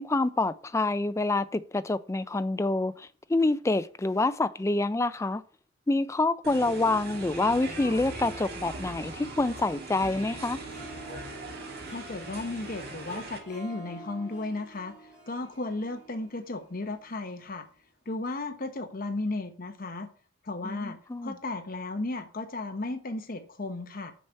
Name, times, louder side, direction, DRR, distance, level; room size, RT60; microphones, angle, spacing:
voice 1, 0.0-5.4 5.9-10.6 20.6-21.3, left 2 dB, 15° left, 0.4 m, -27 dB
sound 1, 6.4-13.4, right 2 dB, 55° right, 1.7 m, -40 dB
Harp, 9.8-17.2, right 1 dB, 5° right, 3.4 m, -47 dB
voice 2, 11.9-17.7 18.1-20.1 20.4-24.1, left 2 dB, 50° left, 1.0 m, -35 dB
6.7 x 6.6 x 4.5 m
head